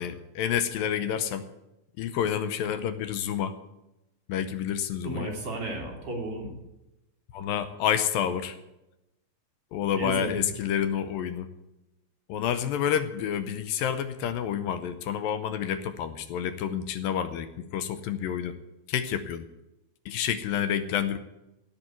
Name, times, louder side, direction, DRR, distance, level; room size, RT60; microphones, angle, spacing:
voice 1, 0.0-1.4 2.0-3.6 4.3-5.3 7.3-8.6 9.7-11.5 12.3-18.6 18.9-19.5 20.1-21.2, left 9 dB, 80° left, 12 dB, 2.5 m, -29 dB
voice 2, 5.0-6.5 10.0-10.5, right 1 dB, 40° right, 0 dB, 3.4 m, -33 dB
17.0 x 6.0 x 9.4 m, 0.93 s
omnidirectional pair, 4.1 m